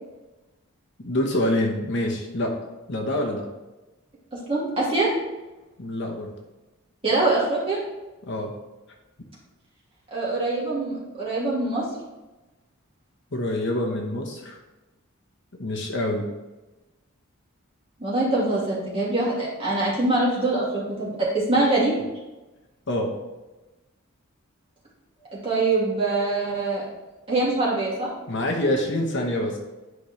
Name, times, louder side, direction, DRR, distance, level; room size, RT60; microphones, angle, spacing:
voice 1, 1.0-2.6 2.9-3.5 5.8-6.3 8.2-8.5 13.3-14.6 15.6-16.3 22.9-23.1 28.3-29.6, left 1 dB, 55° left, 2 dB, 1.1 m, -26 dB
voice 2, 4.5-5.1 7.0-7.8 10.1-11.9 18.0-21.9 25.4-26.8 27.3-28.1, right 2 dB, 25° right, -7 dB, 2.5 m, -23 dB
11.0 x 5.0 x 3.2 m, 1.1 s
head